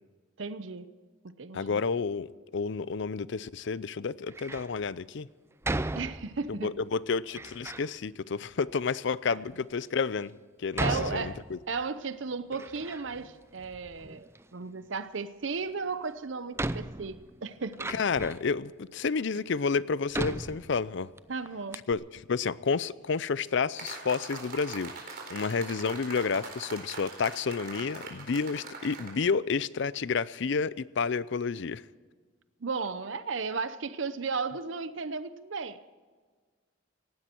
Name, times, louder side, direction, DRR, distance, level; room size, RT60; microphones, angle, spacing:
voice 1, 0.4-0.9 1.2-1.8 5.9-6.7 10.8-17.9 21.3-21.8 32.6-35.9, right 4 dB, 70° right, 0.7 m, -35 dB
voice 2, 1.5-2.3 2.5-5.3 6.6-10.3 10.6-11.6 17.9-21.1 21.9-24.9 25.3-31.8, left 5 dB, 65° left, 0.5 m, -30 dB
Door, 4.3-4.8 5.6-6.6 7.3-7.9 8.7-8.8 9.5-9.6 10.7-11.9 12.2-13.3 13.6-14.4 15.8-15.9 16.6-18.5 19.2-19.3 20.1-21.2 21.5-21.6 21.7-21.9, right 2 dB, 15° right, 0.4 m, -36 dB
sound 1, 23.8-29.2, right 4 dB, 50° right, 4.2 m, -42 dB
18.0 x 16.0 x 4.5 m
head